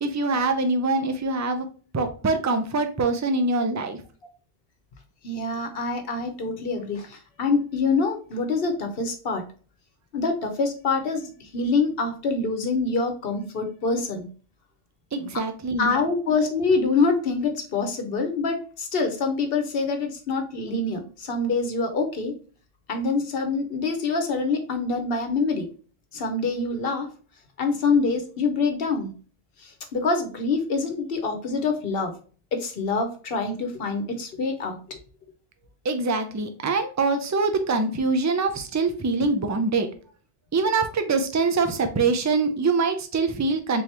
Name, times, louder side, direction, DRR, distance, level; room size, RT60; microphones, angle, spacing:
voice 1, 0.0-1.7 1.9-4.0 15.1-15.9 35.8-39.9 40.5-43.8, right 3 dB, 30° right, 7 dB, 0.3 m, -24 dB
voice 2, 5.2-9.4 10.1-14.3 15.3-15.4 15.8-22.4 22.9-25.7 26.1-27.1 27.6-29.1 29.6-32.1 32.5-35.0, left 4 dB, 65° left, 6 dB, 1.0 m, -25 dB
3.8 x 2.9 x 3.2 m, 0.39 s
omnidirectional pair, 1.1 m